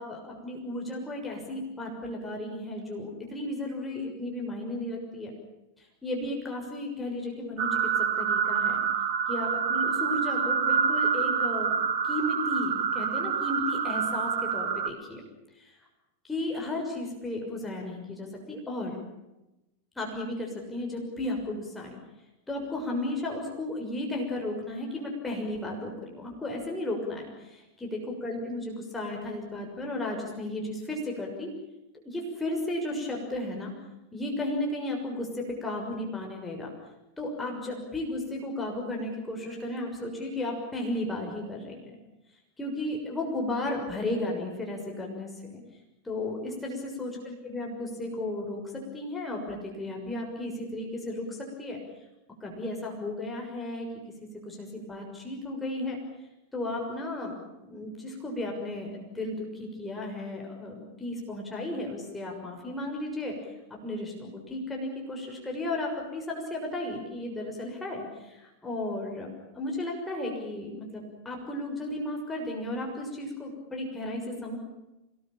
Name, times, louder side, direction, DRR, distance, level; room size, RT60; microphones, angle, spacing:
voice 1, 0.0-5.3 5.8-8.8 9.3-11.8 12.0-15.2 15.6-15.8 16.2-19.0 19.9-22.0 22.5-27.5 27.8-31.5 32.0-33.7 34.1-36.7 37.2-41.8 42.6-45.6 46.0-51.8 52.4-53.9 54.4-56.0 56.5-57.3 57.6-63.3 63.8-69.3 69.5-74.6, left 1 dB, 10° left, 0 dB, 6.4 m, -34 dB
sound 1, 7.6-14.9, right 7 dB, 50° right, 2.6 m, -27 dB
26.0 x 21.0 x 9.0 m, 0.98 s
figure-of-eight pair, 90°, 0 cm